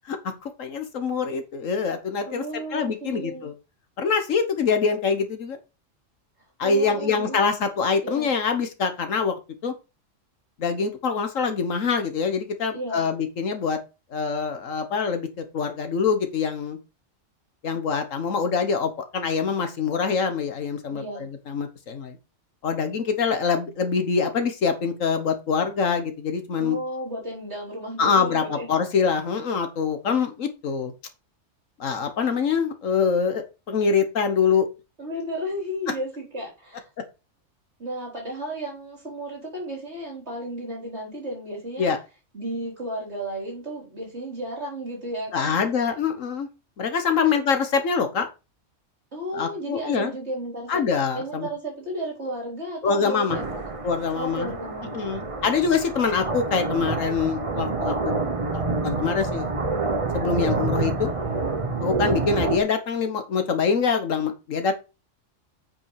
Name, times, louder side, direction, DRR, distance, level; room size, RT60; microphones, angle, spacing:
voice 1, 0.4-2.4 2.7-3.5 4.0-5.6 6.6-9.7 10.6-13.8 14.1-16.8 17.6-21.0 21.5-22.2 22.6-26.8 28.0-30.9 31.8-34.7 41.8-42.0 45.3-46.5 46.8-48.3 49.3-50.1 50.7-51.5 52.8-53.4 53.8-54.5 54.9-58.2 58.5-59.5 60.1-61.1 61.8-64.7, left 5 dB, 85° left, 7 dB, 1.6 m, -24 dB
voice 2, 2.3-3.5 6.6-7.4 8.0-8.3 12.7-13.1 20.9-21.3 26.6-28.7 35.0-36.9 37.8-41.9 42.3-45.7 47.1-47.4 49.1-50.8 51.1-53.6 54.1-55.3, right 1 dB, 60° right, -3 dB, 4.6 m, -33 dB
sound 1, 53.3-62.6, right 3 dB, 25° right, 1.2 m, -27 dB
9.0 x 5.5 x 4.8 m, 0.28 s
omnidirectional pair, 1.3 m